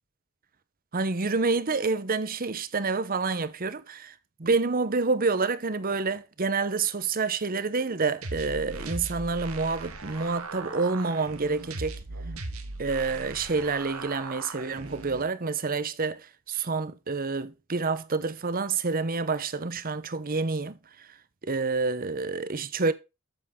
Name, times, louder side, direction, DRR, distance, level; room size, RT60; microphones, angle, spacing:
voice 1, 0.9-4.1 4.4-12.0 12.8-20.7 21.4-22.9, right 4 dB, 40° right, 0.9 m, -28 dB
sound 1, 8.2-15.2, right 3 dB, 90° right, 1.9 m, -38 dB
8.9 x 7.4 x 3.7 m
head